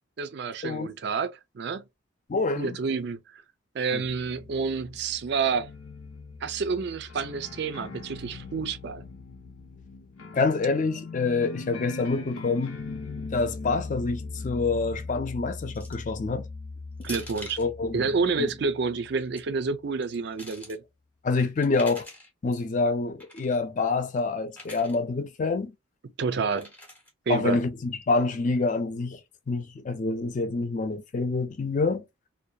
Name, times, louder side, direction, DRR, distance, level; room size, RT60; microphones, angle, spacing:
voice 1, 0.2-1.8 2.6-3.4 3.7-5.7 6.4-9.0 17.0-17.6 17.9-20.8 26.2-26.7 27.3-27.6, right 5 dB, 55° right, 0.4 m, -29 dB
voice 2, 2.3-2.8 3.9-4.0 10.3-12.8 13.3-16.5 17.6-18.1 18.4-18.5 21.2-22.1 22.4-25.7 27.3-29.2 29.5-32.0, left 3 dB, 35° left, 0.4 m, -27 dB
sound 1, 4.0-19.3, left 3 dB, 85° left, 0.6 m, -40 dB
sound 2, 15.7-16.1 17.0-17.7 19.0-19.4 20.0-20.8 21.6-22.3 23.2-23.6 24.5-25.0 26.5-27.1, left 1 dB, 10° left, 0.7 m, -44 dB
2.7 x 2.2 x 2.2 m
head